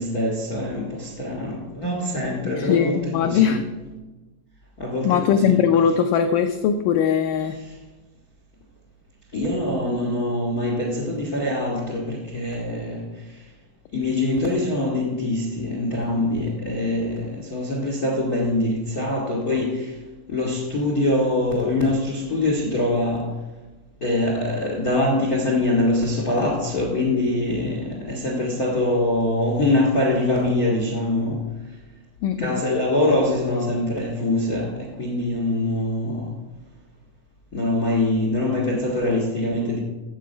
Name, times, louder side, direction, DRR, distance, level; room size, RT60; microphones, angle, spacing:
voice 1, 0.0-3.6 4.8-5.6 9.3-13.4 13.9-20.0 20.3-23.4 24.0-31.5 32.4-36.4 37.5-39.8, left 1 dB, 65° left, 0.9 m, -24 dB
voice 2, 2.5-3.6 5.0-7.6 32.2-32.6, left 8 dB, 85° left, 1.8 m, -20 dB
14.0 x 7.6 x 5.1 m
omnidirectional pair, 4.4 m